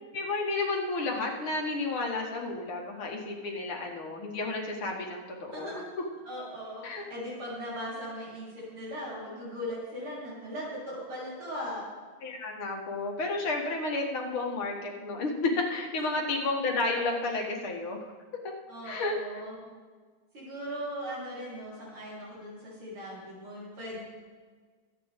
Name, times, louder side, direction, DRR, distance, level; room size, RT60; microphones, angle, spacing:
voice 1, 0.1-5.8 6.8-7.0 12.2-18.1 18.8-19.4, left 3 dB, 85° left, 0 dB, 2.6 m, -31 dB
voice 2, 5.5-5.9 6.2-11.8 16.0-16.1 18.7-19.5 20.3-24.0, equal, 80° right, -8 dB, 5.0 m, -39 dB
23.5 x 8.6 x 3.6 m, 1.5 s
omnidirectional pair, 2.3 m